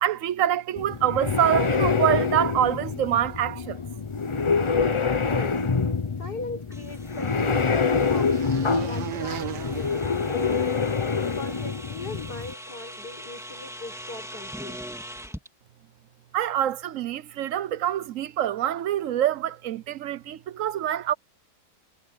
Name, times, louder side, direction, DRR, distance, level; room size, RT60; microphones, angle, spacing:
voice 1, 0.0-3.8 4.5-4.6 16.3-21.1, right 11 dB, 60° right, 1.0 m, -25 dB
sound 1, 0.8-12.5, left 5 dB, 40° left, 0.4 m, -26 dB
voice 2, 5.2-5.6 6.2-14.9, left 3 dB, 70° left, 8.2 m, -40 dB
sound 2, 6.4-11.0, right 10 dB, 80° right, 1.7 m, -39 dB
sound 3, 6.7-15.5, equal, ahead, 2.8 m, -43 dB
omnidirectional pair, 1.8 m